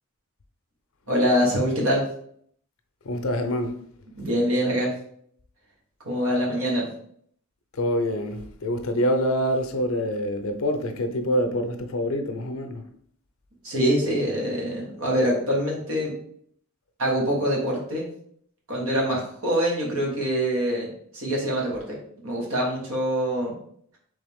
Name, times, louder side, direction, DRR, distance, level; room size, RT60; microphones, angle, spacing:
voice 1, 1.1-2.0 4.2-4.9 6.0-6.9 13.6-16.1 17.0-18.1 18.7-20.9 21.1-22.0 22.2-23.5, equal, 75° right, 1.6 m, -24 dB
voice 2, 3.0-3.8 7.7-12.8, equal, 70° left, 0.6 m, -26 dB
3.8 x 3.4 x 3.5 m
head